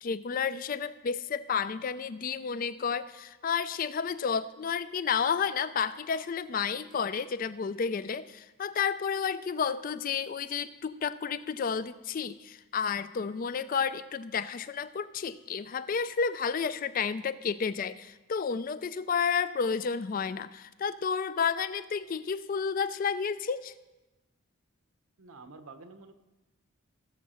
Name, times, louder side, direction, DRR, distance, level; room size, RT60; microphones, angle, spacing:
voice 1, 0.0-23.7, left 6 dB, 40° left, 15 dB, 0.3 m, -31 dB
voice 2, 25.2-26.1, right 3 dB, 85° right, 8 dB, 0.9 m, -49 dB
17.5 x 7.2 x 4.3 m, 1.1 s
head